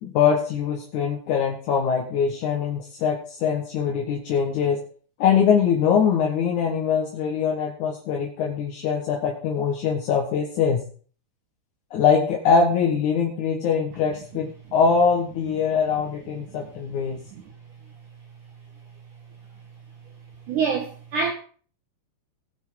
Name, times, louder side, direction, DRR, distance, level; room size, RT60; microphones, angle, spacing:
voice 1, 0.0-4.8 5.2-10.8 11.9-17.2, left 6 dB, 60° left, 2.2 m, -22 dB
voice 2, 16.3-16.7 17.3-17.5 20.5-21.3, right 5 dB, 70° right, 1.9 m, -27 dB
18.0 x 6.5 x 4.7 m
omnidirectional pair, 5.2 m